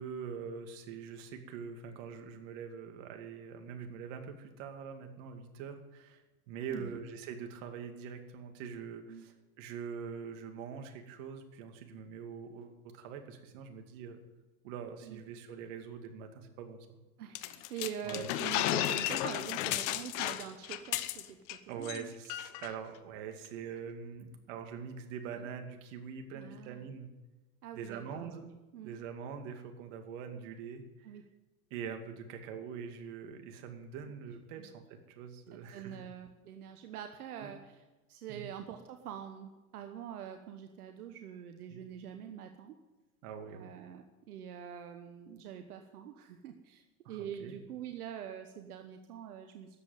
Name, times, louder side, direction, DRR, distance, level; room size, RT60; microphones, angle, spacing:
voice 1, 0.0-14.2 14.6-17.0 18.0-18.3 21.7-27.1 27.7-28.5 28.8-31.1 31.7-36.1 37.4-37.5 38.3-38.4 41.7-41.8 43.2-43.7 47.0-47.5, right 6 dB, 60° right, 5 dB, 2.4 m, -44 dB
voice 2, 17.2-21.4 21.7-22.1 25.4-25.5 26.3-26.9 27.6-29.0 31.0-31.2 34.6-34.7 35.5-37.6 38.1-42.7 43.5-46.8 47.1-49.8, right 9 dB, 85° right, 6 dB, 1.2 m, -45 dB
sound 1, 17.3-21.6 21.8-22.0 22.3-22.7, left 14 dB, 55° left, 1.0 m, -34 dB
13.0 x 7.9 x 9.2 m, 1.1 s
supercardioid pair, 130°, 44 cm